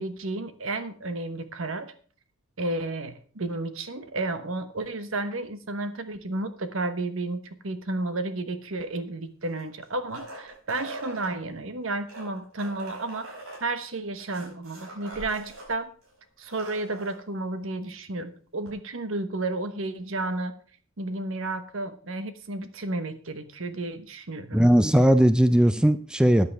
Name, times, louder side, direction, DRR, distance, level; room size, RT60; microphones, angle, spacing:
voice 1, 0.0-1.9 2.6-15.9 16.4-20.5 21.0-24.7, right 2 dB, 70° right, 10 dB, 1.1 m, -32 dB
sound 1, 9.4-11.3 12.0-15.7 16.0-16.1 16.4-17.2 18.7-18.8, right 1 dB, 90° right, 5.6 m, -42 dB
voice 2, 24.5-26.5, equal, 5° right, 11 dB, 0.4 m, -19 dB
14.0 x 9.6 x 3.5 m, 0.43 s
head